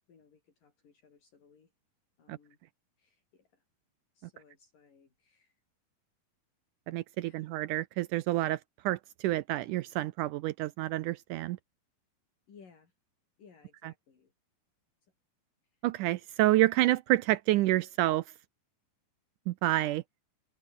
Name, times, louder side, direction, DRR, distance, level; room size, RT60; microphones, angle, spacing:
voice 1, 0.1-1.7 2.2-2.6 3.0-3.6 4.2-5.6 7.2-7.6 8.3-8.4 12.5-12.9 13.4-14.3, left 6 dB, 65° left, 5.8 m, -60 dB
voice 2, 6.9-8.6 8.9-11.6 15.8-18.2 19.5-20.0, right 16 dB, 80° right, 1.9 m, -28 dB
omnidirectional pair, 4.2 m